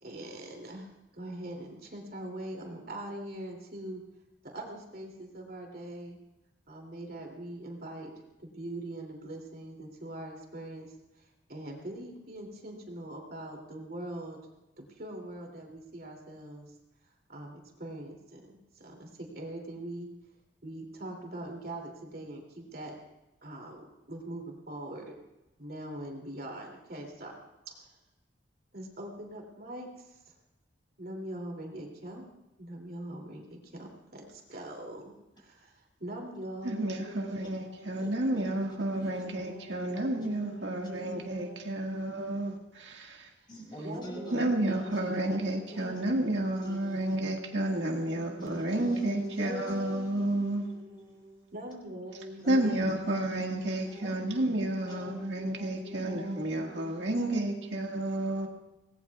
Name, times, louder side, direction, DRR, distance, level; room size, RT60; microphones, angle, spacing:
voice 1, 0.0-4.0 4.4-6.2 6.7-8.1 8.4-10.9 11.1-14.4 14.8-16.7 17.3-20.1 20.6-23.0 23.4-25.2 25.6-27.3 27.8-27.9 28.7-30.2 31.0-32.3 32.6-42.6 43.8-49.8 51.5-58.0, right 1 dB, 50° right, 2.8 m, -43 dB
voice 2, 36.6-43.3 44.3-50.6 52.5-58.5, right 1 dB, 70° right, 1.8 m, -31 dB
voice 3, 43.5-44.4 44.7-45.1 45.4-46.1 46.6-47.1 48.4-51.5 52.4-53.0 53.6-54.4 54.9-55.0 55.6-55.8, left 1 dB, 25° left, 6.3 m, -44 dB
25.5 x 18.5 x 2.4 m
head